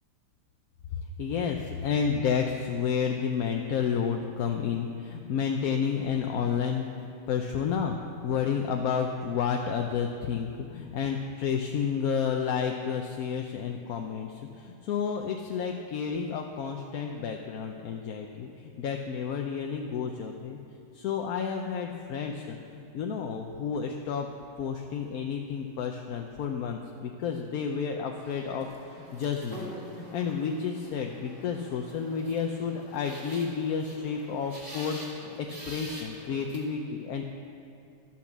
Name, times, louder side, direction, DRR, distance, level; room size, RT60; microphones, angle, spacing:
voice 1, 1.2-6.9 7.3-8.0 8.2-20.6 20.9-24.3 24.6-28.7 29.1-35.0 35.4-37.3, left 6 dB, 65° left, 2 dB, 1.0 m, -31 dB
sound 1, 28.2-36.6, right 1 dB, 30° right, 2.1 m, -46 dB
12.0 x 8.5 x 7.2 m, 2.5 s
omnidirectional pair, 1.8 m